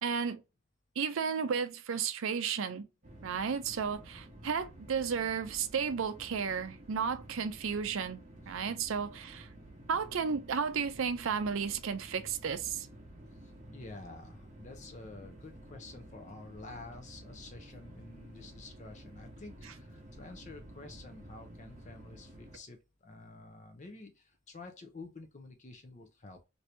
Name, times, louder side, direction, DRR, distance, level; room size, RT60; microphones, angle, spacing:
voice 1, 0.0-0.4 1.0-2.9 3.2-9.5 9.9-12.9 19.6-19.8, right 6 dB, 65° right, 0.5 m, -33 dB
sound 1, 3.0-22.6, right 1 dB, 35° right, 0.9 m, -52 dB
voice 2, 13.4-26.4, left 3 dB, 35° left, 0.5 m, -50 dB
2.8 x 2.6 x 3.2 m
head